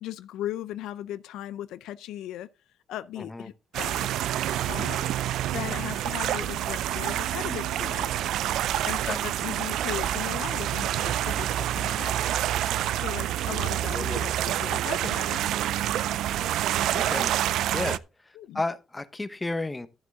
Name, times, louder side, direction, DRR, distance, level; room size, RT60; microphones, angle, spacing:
voice 1, 0.0-2.5 2.9-4.2 4.6-5.1 5.5-12.4 12.7-15.4 18.3-18.6, left 13 dB, 85° left, 0.6 m, -38 dB
voice 2, 3.2-3.5 9.0-9.2 13.9-14.2 16.9-17.3 17.7-19.9, left 2 dB, 20° left, 1.1 m, -33 dB
sound 1, 3.7-18.0, right 12 dB, 85° right, 0.4 m, -27 dB
12.0 x 8.2 x 3.6 m
cardioid pair, 90°, 0 cm